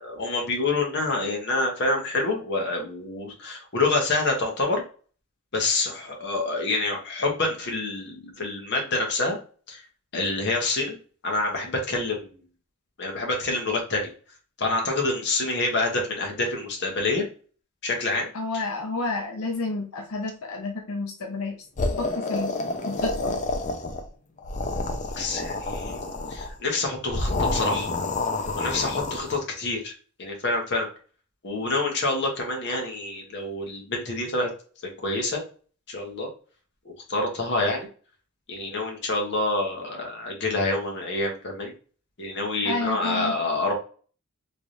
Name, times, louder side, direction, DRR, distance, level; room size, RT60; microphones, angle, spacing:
voice 1, 0.0-4.8 5.5-9.4 9.7-9.8 10.1-11.0 11.2-12.4 13.0-14.1 14.6-17.2 17.8-18.3 25.1-25.9 26.3-27.9 28.5-29.9 30.2-30.9 31.4-34.5 35.0-35.4 35.9-36.3 37.1-37.9 38.5-41.7 42.2-43.7, left 2 dB, 55° left, 1 dB, 1.1 m, -27 dB
voice 2, 18.3-21.6 22.0-22.6 22.9-23.4 42.6-43.3, left 3 dB, 80° left, 1 dB, 0.7 m, -30 dB
sound 1, 21.8-24.1 24.4-26.5 27.1-29.4, left 2 dB, 35° left, 0.5 m, -28 dB
3.3 x 3.2 x 2.6 m, 0.40 s
head